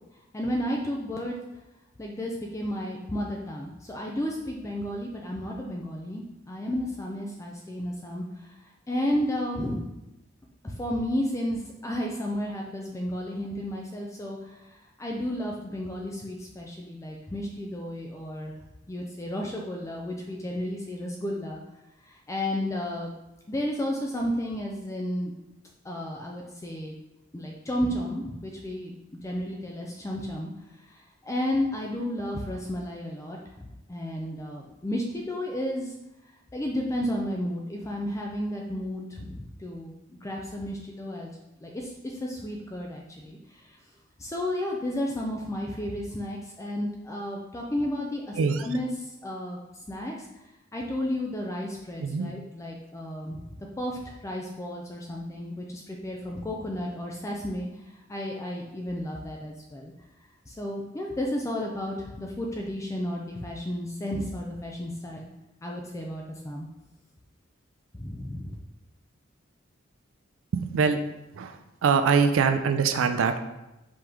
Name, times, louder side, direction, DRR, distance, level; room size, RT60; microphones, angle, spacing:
voice 1, 0.3-1.4 2.0-8.6 8.9-9.9 10.6-18.5 18.9-21.6 22.0-23.1 23.5-25.3 25.8-26.9 27.3-28.9 29.2-30.5 30.8-35.9 36.5-41.3 41.6-43.8 44.2-49.6 49.9-50.3 50.7-59.9 60.5-65.3 65.6-66.7 67.9-68.5, left 1 dB, 15° left, -1 dB, 0.4 m, -32 dB
voice 2, 48.4-48.7 52.0-52.3 70.5-71.0 71.4-73.4, right 5 dB, 80° right, 8 dB, 0.4 m, -23 dB
5.0 x 3.0 x 3.5 m, 0.94 s
head